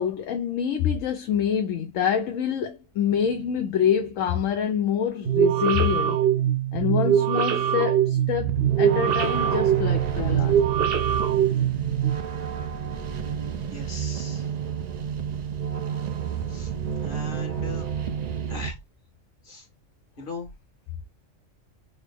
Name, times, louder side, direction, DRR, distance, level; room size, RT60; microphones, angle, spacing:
voice 1, 0.0-6.2 6.7-10.6, left 8 dB, 85° left, 1.0 m, -26 dB
sound 1, 3.1-4.4 8.3-18.7, right 8 dB, 85° right, 0.3 m, -31 dB
sound 2, 5.3-12.1, right 10 dB, 60° right, 0.7 m, -23 dB
voice 2, 13.7-14.4 16.5-16.7 17.0-17.9 18.5-18.8 19.5-19.7 20.2-20.5, left 3 dB, 45° left, 1.4 m, -38 dB
3.9 x 2.0 x 3.3 m
omnidirectional pair, 1.3 m